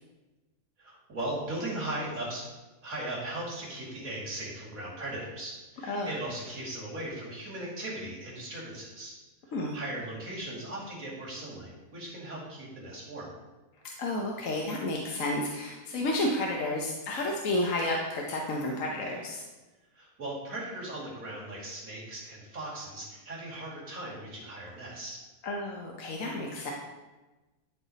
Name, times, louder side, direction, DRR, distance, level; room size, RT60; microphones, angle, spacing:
voice 1, 0.8-2.5 2.8-9.1 9.5-13.3 19.9-25.2, right 1 dB, 75° right, -5 dB, 2.7 m, -38 dB
voice 2, 14.0-19.4 25.4-26.7, left 1 dB, 70° left, -1 dB, 1.2 m, -31 dB
11.5 x 4.0 x 4.0 m, 1.1 s
omnidirectional pair, 1.5 m